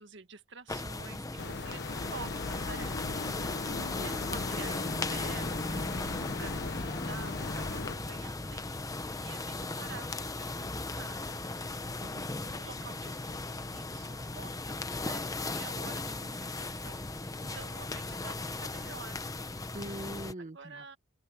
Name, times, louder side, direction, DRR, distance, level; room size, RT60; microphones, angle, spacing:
voice 1, 0.0-3.3 4.0-11.6 12.4-19.2 20.4-21.0, right 5 dB, 65° right, 1.8 m, -49 dB
sound 1, 0.7-20.3, left 2 dB, 20° left, 1.0 m, -37 dB
sound 2, 1.4-8.0, left 4 dB, 60° left, 0.8 m, -39 dB
voice 2, 3.7-4.4 11.8-12.3 19.7-20.8, right 1 dB, 40° right, 1.3 m, -43 dB
open air
head